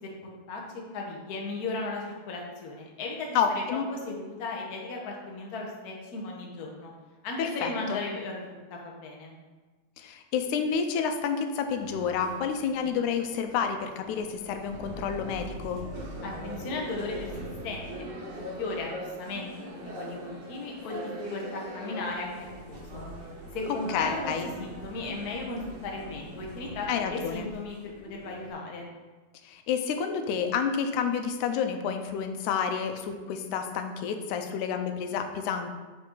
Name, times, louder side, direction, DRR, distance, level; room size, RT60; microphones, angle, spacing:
voice 1, 0.0-0.6 0.9-3.6 3.9-6.9 7.2-9.3 16.2-17.3 17.6-23.0 23.5-24.3 24.6-28.9, left 3 dB, 65° left, -1 dB, 0.9 m, -36 dB
voice 2, 3.4-3.9 7.4-8.0 10.0-15.8 23.7-24.5 26.9-27.5 29.4-35.7, left 6 dB, 85° left, 7 dB, 2.1 m, -29 dB
sound 1, 11.8-28.5, right 1 dB, 55° right, 1.3 m, -42 dB
7.4 x 5.0 x 3.8 m, 1.3 s
omnidirectional pair, 3.4 m